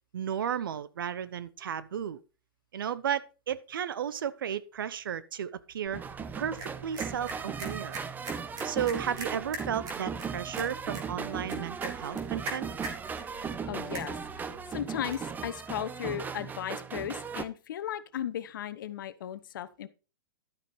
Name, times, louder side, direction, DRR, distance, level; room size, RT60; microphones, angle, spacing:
voice 1, 0.1-2.2 2.7-6.0 6.4-8.0 8.6-12.7, right 8 dB, 70° right, 0.8 m, -34 dB
sound 1, 5.8-15.4, right 3 dB, 30° right, 3.4 m, -44 dB
sound 2, 5.9-17.4, right 6 dB, 15° right, 0.7 m, -37 dB
voice 2, 13.3-19.9, left 10 dB, 65° left, 1.0 m, -36 dB
12.0 x 9.2 x 3.2 m
hypercardioid pair, 110°, 12 cm